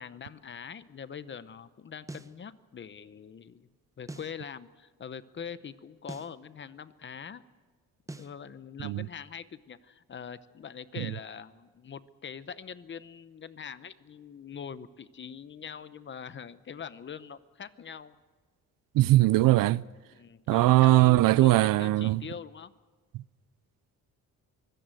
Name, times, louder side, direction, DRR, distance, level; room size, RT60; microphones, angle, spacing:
voice 1, 0.0-3.7 4.0-7.4 8.1-18.2 20.1-22.7, left 7 dB, 35° left, 0.8 m, -43 dB
sound 1, 2.1-2.4 4.1-4.4 6.1-6.4 8.1-8.4, right 2 dB, 10° right, 0.8 m, -43 dB
voice 2, 18.9-19.8 20.5-22.2 23.1-23.2, right 17 dB, 80° right, 0.6 m, -21 dB
24.5 x 17.0 x 7.6 m
cardioid pair, 130°, 33 cm